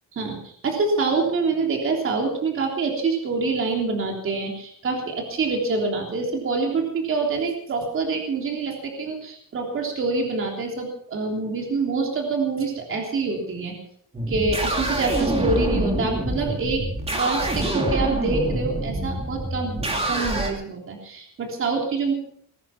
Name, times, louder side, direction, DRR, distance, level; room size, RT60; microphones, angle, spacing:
voice 1, 0.1-13.7 14.3-22.1, right 3 dB, 40° right, 1 dB, 3.4 m, -26 dB
sound 1, 14.1-20.5, right 1 dB, 20° right, 2.8 m, -26 dB
20.5 x 10.5 x 5.9 m, 0.65 s
cardioid pair, 175°, 33 cm